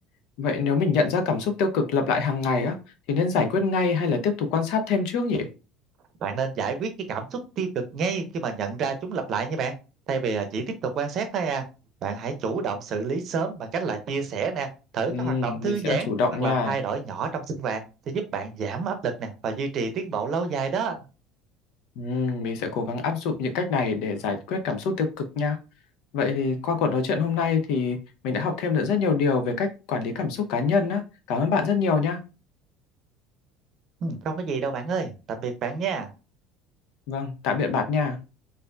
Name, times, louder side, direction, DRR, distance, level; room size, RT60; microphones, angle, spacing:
voice 1, 0.4-2.8 3.1-5.5 15.1-16.8 22.0-25.1 25.4-25.6 26.1-28.0 28.2-31.0 31.3-32.2 37.1-38.2, left 4 dB, 55° left, 6 dB, 0.6 m, -25 dB
voice 2, 6.2-9.7 10.1-11.6 12.0-14.7 14.9-16.1 16.4-21.0 34.0-36.1, right 5 dB, 45° right, 6 dB, 0.7 m, -29 dB
4.2 x 2.6 x 2.2 m, 0.30 s
figure-of-eight pair, 65°, 0 cm